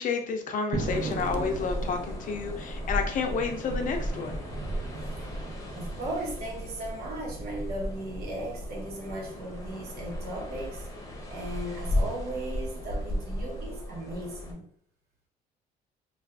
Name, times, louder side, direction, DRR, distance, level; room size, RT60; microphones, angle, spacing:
voice 1, 0.0-4.4, left 5 dB, 50° left, 4 dB, 0.6 m, -30 dB
sound 1, 0.7-13.6, right 3 dB, 35° right, 0.8 m, -42 dB
sound 2, 0.8-14.5, equal, 20° left, 0.8 m, -35 dB
voice 2, 5.7-10.9 11.3-14.7, right 1 dB, 65° right, 0 dB, 1.1 m, -37 dB
2.5 x 2.4 x 3.4 m, 0.63 s
cardioid pair, 110°, 17 cm